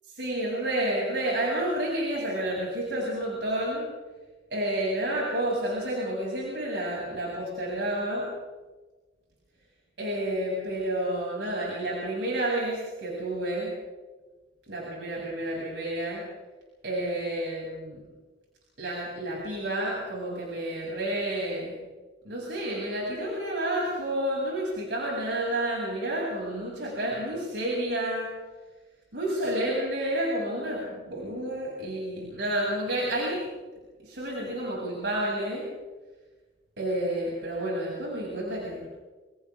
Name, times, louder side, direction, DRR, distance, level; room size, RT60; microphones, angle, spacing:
voice 1, 0.2-3.8 4.5-8.3 10.0-13.7 14.7-16.2 16.8-18.0 18.8-21.7 22.2-28.3 29.1-33.4 34.1-35.6 36.8-38.9, right 1 dB, 75° right, -4 dB, 7.7 m, -30 dB
29.0 x 28.5 x 3.8 m, 1.2 s
head